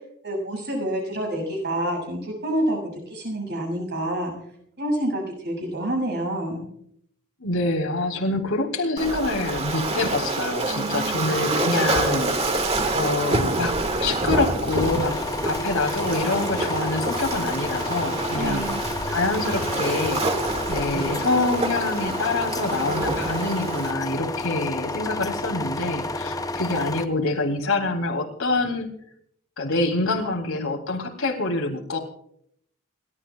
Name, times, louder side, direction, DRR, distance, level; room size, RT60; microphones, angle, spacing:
voice 1, 0.2-4.3 4.8-6.7 10.7-11.3 18.4-18.8, right 1 dB, 50° right, 1 dB, 7.1 m, -28 dB
voice 2, 7.4-12.6 12.9-15.2 15.4-20.2 20.7-28.9 29.6-32.0, left 2 dB, 75° left, 2 dB, 3.4 m, -26 dB
Waves surf, 9.0-23.9, right 2 dB, 30° right, 1.8 m, -27 dB
sound 1, 14.7-27.1, left 2 dB, 15° left, 0.7 m, -30 dB
sound 2, 15.4-20.9, left 1 dB, 45° left, 2.3 m, -40 dB
29.0 x 13.0 x 2.4 m, 0.70 s
head